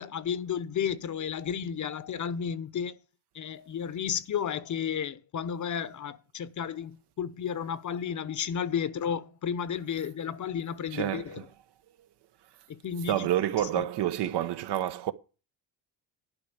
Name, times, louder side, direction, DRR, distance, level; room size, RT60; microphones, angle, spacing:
voice 1, 0.0-3.0 3.3-11.4 12.7-13.3 13.7-13.8, left 8 dB, 45° left, 0.9 m, -33 dB
voice 2, 10.9-11.4 13.1-15.1, right 12 dB, 65° right, 1.0 m, -28 dB
11.0 x 4.9 x 8.4 m
cardioid pair, 95°, 43 cm